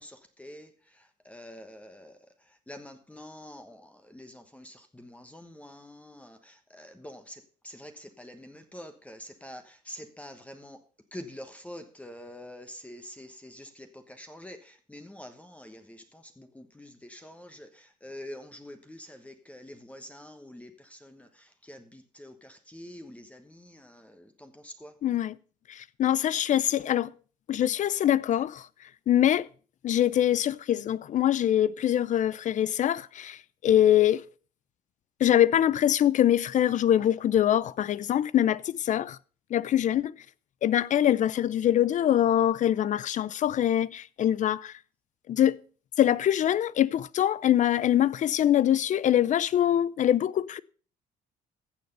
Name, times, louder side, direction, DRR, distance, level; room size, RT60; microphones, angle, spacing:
voice 1, 1.3-2.1 2.7-3.8 4.1-6.4 6.8-7.3 7.6-9.6 9.9-10.8 11.1-13.7 14.2-14.6 14.9-15.8 16.4-17.7 18.0-20.7 21.0-21.3 21.7-22.3 22.7-24.0 24.4-24.9, left 1 dB, 10° left, 1.2 m, -45 dB
voice 2, 25.0-25.3 25.7-27.1 27.5-28.7 29.1-29.5 29.8-34.2 35.2-39.2 39.5-40.1 40.6-44.7 45.3-45.6 46.0-50.6, left 11 dB, 45° left, 0.5 m, -24 dB
14.5 x 6.7 x 5.4 m
cardioid pair, 110°, 17 cm